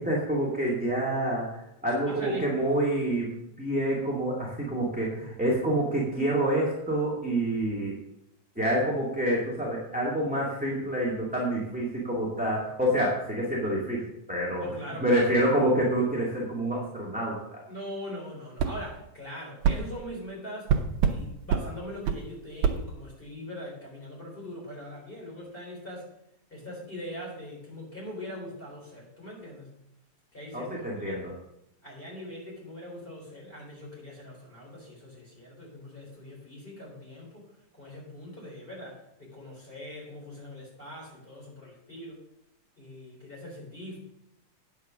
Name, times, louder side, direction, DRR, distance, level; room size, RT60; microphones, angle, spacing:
voice 1, 0.0-7.9 8.5-14.6 15.0-17.6 30.5-31.3, right 1 dB, 5° right, -5 dB, 1.4 m, -27 dB
voice 2, 2.1-2.6 14.6-15.2 17.7-20.7 21.0-26.1 26.5-29.8 30.3-30.8 31.1-31.3 31.8-42.2 42.8-44.0, equal, 15° left, -3 dB, 4.0 m, -42 dB
sound 1, 18.6-18.8 19.6-19.8 20.7-21.2 21.5-21.7 22.1-22.2 22.6-22.8, right 7 dB, 80° right, 2.2 m, -24 dB
9.3 x 7.1 x 6.2 m, 0.83 s
omnidirectional pair, 3.3 m